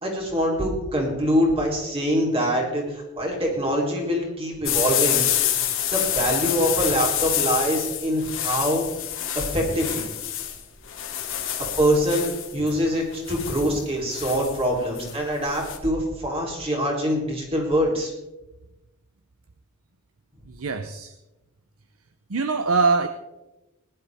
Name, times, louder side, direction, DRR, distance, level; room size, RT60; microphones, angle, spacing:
voice 1, 0.0-5.2 5.9-8.8 9.3-10.0 11.8-18.1, equal, 25° right, -1 dB, 3.5 m, -24 dB
sound 1, 4.6-15.8, left 11 dB, 65° left, 1.9 m, -27 dB
voice 2, 20.5-21.1 22.3-23.1, right 4 dB, 70° right, 9 dB, 0.7 m, -23 dB
20.0 x 11.0 x 3.5 m, 1.0 s
head